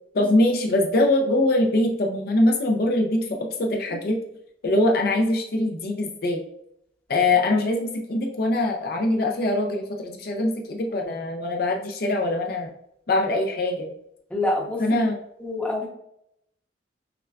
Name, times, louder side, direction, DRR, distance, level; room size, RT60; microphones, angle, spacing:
voice 1, 0.1-4.2 4.6-6.4 7.1-12.7 13.1-13.9 14.8-15.2, left 1 dB, 55° left, 2 dB, 0.5 m, -23 dB
voice 2, 14.3-14.8 15.4-15.9, left 2 dB, 10° left, -3 dB, 0.8 m, -25 dB
5.7 x 2.2 x 2.3 m, 0.76 s
head